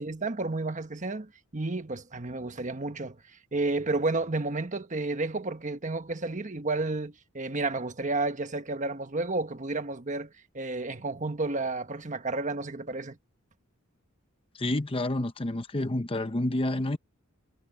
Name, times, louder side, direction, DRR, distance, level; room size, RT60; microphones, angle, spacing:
voice 1, 0.0-3.2 3.5-13.2, right 3 dB, 35° right, 1.4 m, -31 dB
voice 2, 14.5-17.0, left 1 dB, 25° left, 0.8 m, -29 dB
head